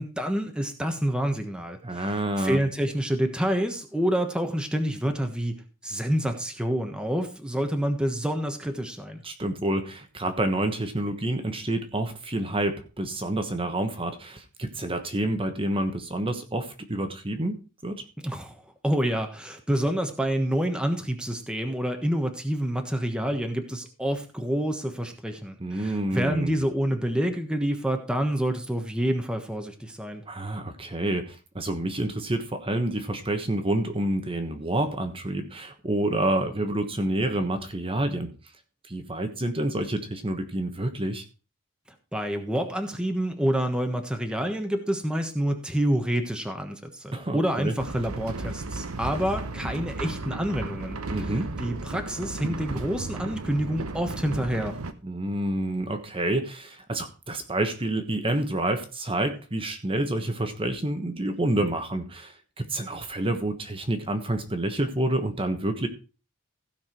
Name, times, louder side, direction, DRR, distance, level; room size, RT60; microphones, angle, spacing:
voice 1, 0.0-5.5 5.8-9.2 18.2-18.6 18.8-30.2 42.1-51.0 51.6-54.8, equal, 5° right, 5 dB, 1.2 m, -28 dB
voice 2, 1.8-2.6 9.2-18.0 25.6-26.5 30.3-38.3 38.9-41.2 47.1-47.7 51.1-51.5 55.0-65.9, right 1 dB, 25° right, 6 dB, 1.3 m, -28 dB
sound 1, 47.8-54.9, right 2 dB, 80° right, 1.0 m, -34 dB
15.5 x 5.9 x 4.4 m, 0.33 s
head